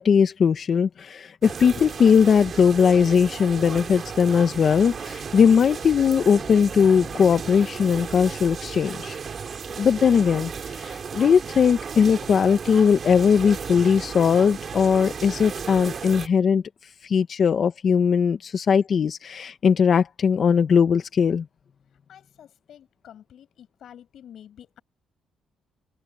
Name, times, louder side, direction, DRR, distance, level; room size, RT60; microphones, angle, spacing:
voice 1, 0.0-9.2 9.8-16.6 17.0-21.5, left 6 dB, 50° left, 1.0 m, -19 dB
sound 1, 1.4-16.3, right 6 dB, 45° right, 2.7 m, -35 dB
voice 2, 22.1-24.8, left 10 dB, 65° left, 7.4 m, -48 dB
cardioid pair, 90°, 0 cm